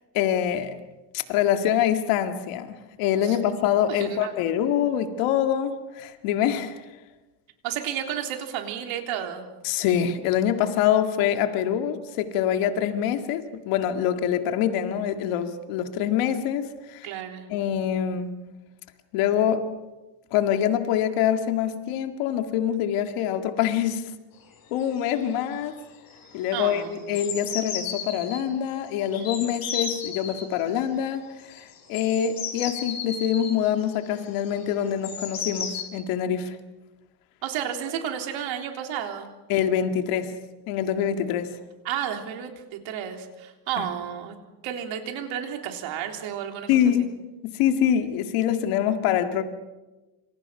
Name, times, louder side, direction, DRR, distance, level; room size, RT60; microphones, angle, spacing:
voice 1, 0.1-0.8 1.1-6.9 9.6-17.1 17.5-18.3 19.1-19.7 20.3-24.0 24.7-25.8 26.3-36.6 39.5-40.3 40.7-41.5 43.8-43.9 46.7-47.1 47.4-49.4, left 9 dB, 85° left, 2.2 m, -25 dB
voice 2, 3.9-4.3 7.6-9.5 17.0-17.5 26.5-27.1 37.4-39.3 41.8-44.4 44.6-46.9, right 9 dB, 65° right, 3.7 m, -32 dB
sound 1, 24.5-24.6 24.8-25.2 25.5-25.8 26.1-28.4 29.1-30.5 31.5-35.8, left 7 dB, 45° left, 4.6 m, -34 dB
27.0 x 27.0 x 5.8 m
cardioid pair, 170°, 50 cm